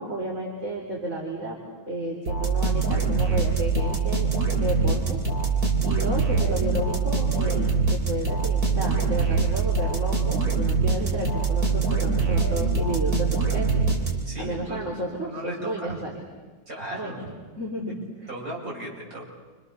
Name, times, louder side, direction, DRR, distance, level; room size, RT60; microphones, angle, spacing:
voice 1, 0.0-1.6 1.8-5.2 5.8-13.9 14.4-16.2 16.9-17.1 17.6-17.9 18.2-18.3, right 1 dB, 55° right, -2 dB, 4.2 m, -32 dB
sound 1, 2.3-14.5, right 4 dB, 90° right, 4.8 m, -24 dB
voice 2, 4.6-5.1 14.2-16.0 16.7-17.2 18.3-19.3, right 1 dB, 75° right, -4 dB, 8.6 m, -37 dB
29.5 x 27.0 x 7.1 m, 1.3 s
omnidirectional pair, 1.6 m